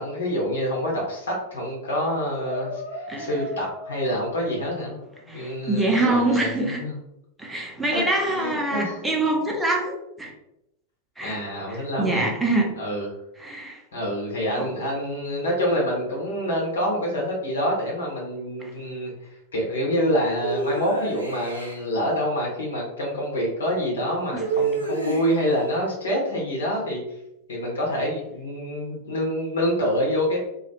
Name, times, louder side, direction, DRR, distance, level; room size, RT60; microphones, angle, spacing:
voice 1, 0.0-4.9 5.3-6.9 7.9-9.0 11.2-12.3 12.8-13.1 13.9-19.1 19.5-27.0 27.5-30.4, equal, 70° left, -2 dB, 0.9 m, -26 dB
sound 1, 1.8-2.0 2.4-5.2, left 1 dB, 40° left, 0.9 m, -37 dB
voice 2, 5.3-6.8 7.4-10.3 11.2-11.4 11.7-12.8 13.4-13.8 14.6-14.7 24.3-24.5, right 2 dB, 10° right, 1 dB, 0.5 m, -25 dB
sound 2, 20.4-21.8 24.4-25.5, right 4 dB, 85° left, 0.5 m, -28 dB
2.3 x 2.0 x 2.9 m, 0.85 s
figure-of-eight pair, 90°, 0 cm